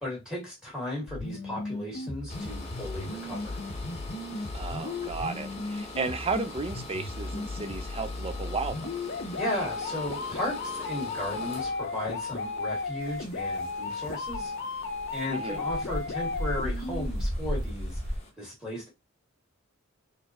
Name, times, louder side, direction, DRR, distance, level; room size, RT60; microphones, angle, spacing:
voice 1, 0.0-3.6 9.4-14.5 15.1-18.0 18.4-18.9, left 1 dB, 5° right, 1.8 m, -35 dB
sound 1, 1.1-17.1, left 3 dB, 55° left, 0.7 m, -35 dB
sound 2, 2.3-18.3, left 2 dB, 35° left, 1.0 m, -45 dB
voice 2, 4.5-8.9 15.3-15.6, right 4 dB, 30° right, 0.6 m, -34 dB
sound 3, 13.0-18.2, equal, 75° right, 1.2 m, -35 dB
4.2 x 3.1 x 2.9 m
head